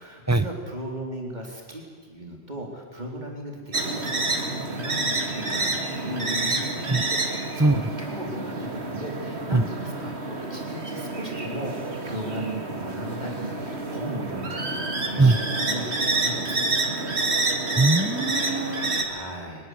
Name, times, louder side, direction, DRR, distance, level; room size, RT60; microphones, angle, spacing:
voice 1, 0.0-6.9 7.2-11.8 12.0-17.2 19.0-19.7, equal, 45° right, 0 dB, 4.2 m, -37 dB
sound 1, 3.7-19.0, right 2 dB, 80° right, 2.7 m, -28 dB
voice 2, 17.8-19.0, right 2 dB, 15° right, 13 dB, 1.0 m, -21 dB
23.5 x 22.5 x 8.2 m, 1.5 s
omnidirectional pair, 1.1 m